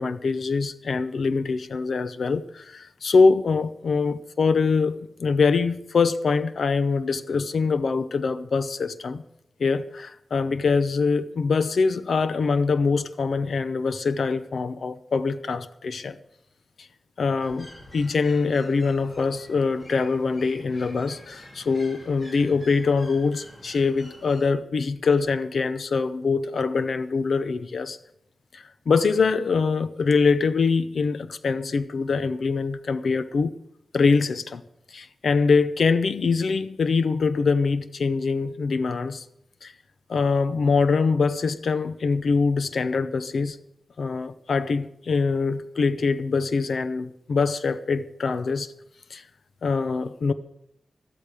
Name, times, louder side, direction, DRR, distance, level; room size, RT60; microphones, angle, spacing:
voice 1, 0.0-9.2 9.6-16.2 16.8-16.9 17.2-28.0 28.5-33.5 33.9-34.6 34.9-39.2 39.6-39.7 40.1-43.6 44.0-48.7 49.1-49.2 49.6-50.3, left 4 dB, 65° left, 0.7 m, -24 dB
sound 1, 17.4-24.5, left 1 dB, 25° left, 2.8 m, -47 dB
14.0 x 13.0 x 5.0 m
wide cardioid pair, 155°, 0 cm